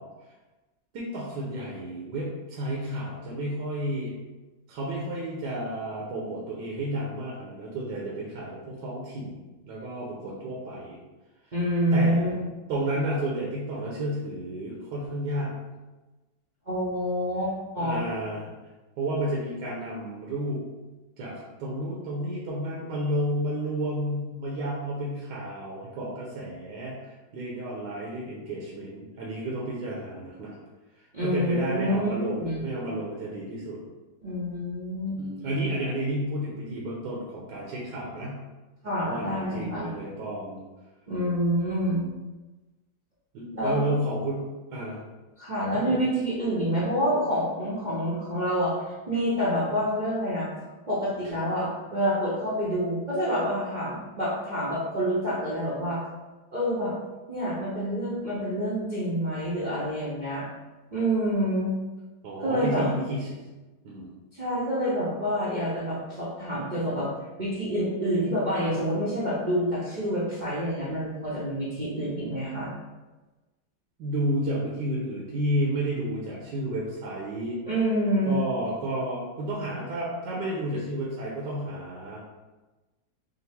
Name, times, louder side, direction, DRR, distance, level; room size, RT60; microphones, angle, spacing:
voice 1, 0.9-4.2 4.7-9.4 9.7-11.0 11.9-12.3 12.7-15.6 17.8-18.5 19.0-20.7 21.2-30.5 31.2-33.8 35.2-38.4 39.0-40.6 43.3-45.0 45.9-46.0 62.2-63.4 63.8-64.1 74.0-77.6 78.3-82.2, right 1 dB, 70° right, -4 dB, 1.3 m, -31 dB
voice 2, 11.5-12.3 16.7-18.0 31.1-32.1 32.4-32.6 34.2-35.2 38.8-39.9 41.1-42.1 43.5-43.8 45.4-48.8 49.1-50.5 50.9-56.0 56.5-56.9 57.3-60.4 60.9-61.7 62.4-62.9 64.3-67.1 67.4-72.7 77.7-78.4, equal, 45° right, -8 dB, 0.6 m, -27 dB
5.9 x 2.0 x 3.5 m, 1.2 s
omnidirectional pair, 2.0 m